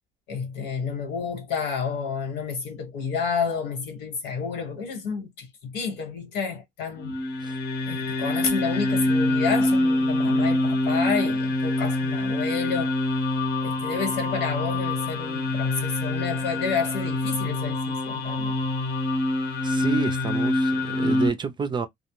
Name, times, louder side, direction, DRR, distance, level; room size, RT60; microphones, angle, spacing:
voice 1, 0.3-7.1 7.8-12.9 13.6-18.6, left 5 dB, 85° left, 1.3 m, -30 dB
sound 1, 7.0-21.3, left 1 dB, 70° left, 0.9 m, -25 dB
voice 2, 19.6-21.9, right 6 dB, 25° right, 0.4 m, -30 dB
2.2 x 2.1 x 3.0 m
cardioid pair, 110°, 17 cm